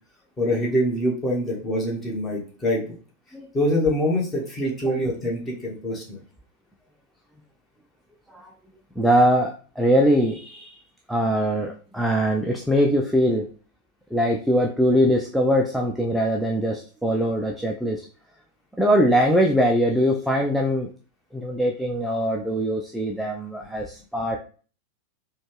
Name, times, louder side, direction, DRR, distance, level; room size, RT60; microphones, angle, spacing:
voice 1, 0.4-2.9 3.5-6.2, left 1 dB, 20° left, -2 dB, 1.3 m, -24 dB
voice 2, 9.0-10.8 11.1-13.5 14.1-18.1 18.8-20.9 21.3-24.4, equal, ahead, 0 dB, 0.4 m, -22 dB
4.0 x 2.2 x 3.3 m, 0.40 s
figure-of-eight pair, 90°, 0 cm